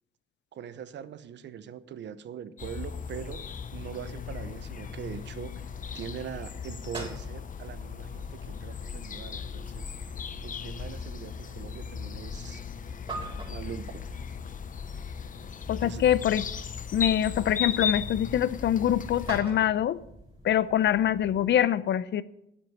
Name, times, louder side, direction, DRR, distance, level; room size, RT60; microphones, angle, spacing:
voice 1, 0.5-3.4 3.7-5.5 5.9-9.9 10.4-12.6 13.5-14.1 15.8-16.0, right 8 dB, 65° right, 0.9 m, -42 dB
sound 1, 2.6-19.4, left 7 dB, 40° left, 0.9 m, -37 dB
sound 2, 3.3-21.6, right 2 dB, 25° right, 4.9 m, -47 dB
voice 2, 15.7-16.5 16.9-20.0 20.4-22.2, left 10 dB, 65° left, 0.7 m, -24 dB
9.8 x 8.1 x 9.3 m
cardioid pair, 90°, 20 cm